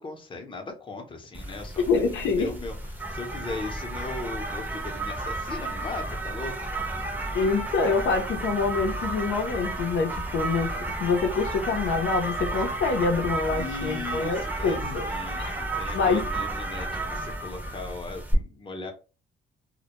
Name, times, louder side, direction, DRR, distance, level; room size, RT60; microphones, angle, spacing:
voice 1, 0.0-2.8 3.1-6.7 13.5-18.9, left 3 dB, 25° left, 0.7 m, -38 dB
sound 1, 1.3-18.3, right 2 dB, 10° right, 0.7 m, -32 dB
voice 2, 1.9-2.5 7.3-10.7 11.0-15.0 15.4-15.6 15.9-16.2, left 4 dB, 75° left, 0.6 m, -26 dB
2.1 x 2.1 x 2.9 m
cardioid pair, 90°, 20 cm